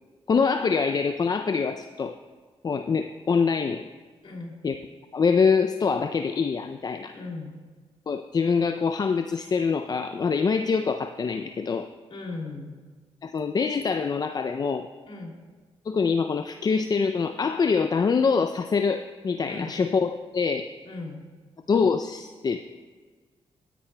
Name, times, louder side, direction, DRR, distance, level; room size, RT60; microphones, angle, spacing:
voice 1, 0.3-2.1 2.6-3.9 4.6-4.8 5.1-7.1 8.1-11.9 13.2-14.9 15.9-20.7 21.7-22.6, left 5 dB, 40° left, 7 dB, 0.4 m, -24 dB
voice 2, 4.2-4.5 7.1-7.5 12.1-12.8 15.1-15.3 19.5-19.7 20.8-21.2, left 3 dB, 60° left, 0 dB, 2.7 m, -37 dB
16.0 x 10.0 x 2.2 m, 1.4 s
cardioid pair, 85°, 10 cm